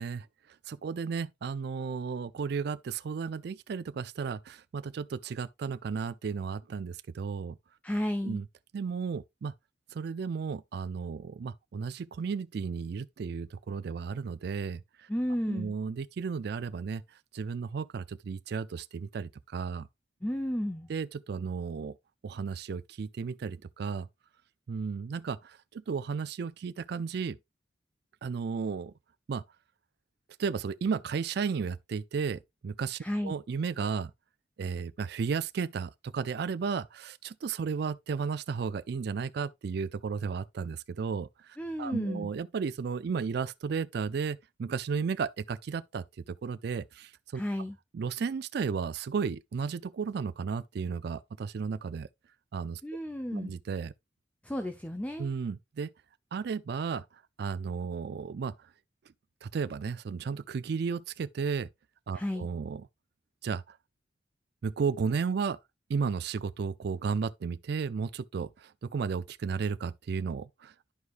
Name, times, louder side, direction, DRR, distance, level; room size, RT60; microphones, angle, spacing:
voice 1, 0.0-7.6 8.2-8.4 8.7-9.5 9.9-15.1 15.5-19.9 20.9-21.9 22.2-24.1 24.7-27.4 28.2-28.9 29.3-29.4 30.4-34.1 34.6-47.4 47.9-52.1 52.5-52.8 53.3-53.9 55.2-55.9 56.3-58.7 59.4-61.7 62.1-62.8 63.4-63.8 64.6-65.6 65.9-70.9, right 5 dB, 60° right, 0.4 m, -34 dB
voice 2, 7.8-8.4 15.1-15.7 20.2-20.9 33.0-33.4 41.6-42.3 47.3-47.8 52.8-53.5 54.4-55.3 62.1-62.5, equal, 10° left, 0.6 m, -33 dB
11.5 x 4.8 x 2.4 m
head